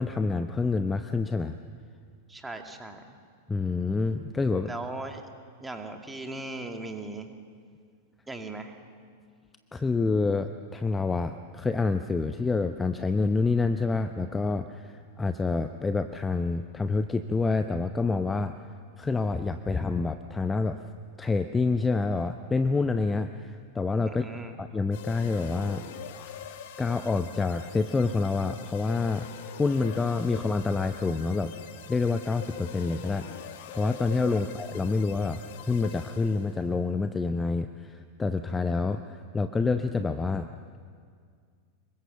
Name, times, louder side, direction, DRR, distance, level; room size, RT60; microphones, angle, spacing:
voice 1, 0.0-1.5 3.5-4.7 9.7-18.6 19.0-20.8 21.2-24.3 24.6-25.8 26.8-29.3 29.6-31.5 31.9-35.4 35.7-40.5, left 3 dB, 15° left, 10 dB, 0.8 m, -27 dB
voice 2, 2.3-3.0 4.7-5.2 5.6-7.3 8.3-8.7 24.0-24.5 34.3-34.4, right 2 dB, 10° right, 4 dB, 2.2 m, -38 dB
sound 1, 24.9-36.7, left 8 dB, 55° left, 1.8 m, -43 dB
26.0 x 23.0 x 7.0 m, 2.1 s
figure-of-eight pair, 90°, 0 cm